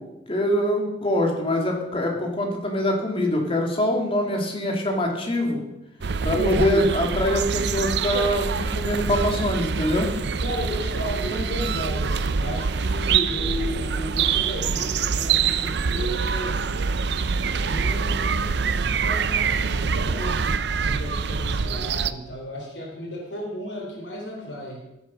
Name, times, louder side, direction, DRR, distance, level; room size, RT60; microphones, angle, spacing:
voice 1, 0.3-5.6 6.2-10.1, left 1 dB, 30° left, 1 dB, 2.5 m, -24 dB
sound 1, 6.0-22.1, right 5 dB, 65° right, 0.6 m, -25 dB
voice 2, 6.3-7.0 10.4-16.7 17.2-17.3 17.6-24.9, equal, 85° left, -1 dB, 3.6 m, -33 dB
14.0 x 8.2 x 6.1 m, 0.94 s
head